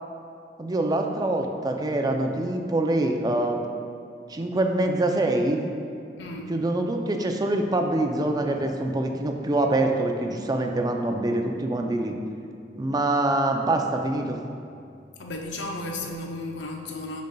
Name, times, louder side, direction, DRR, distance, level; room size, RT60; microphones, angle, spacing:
voice 1, 0.6-3.6 4.3-5.6 6.5-12.1 12.8-14.4, right 2 dB, 20° right, 3 dB, 0.4 m, -25 dB
voice 2, 6.2-6.6 15.2-17.2, left 2 dB, 75° left, 1 dB, 0.7 m, -34 dB
10.5 x 5.2 x 2.3 m, 2.5 s
head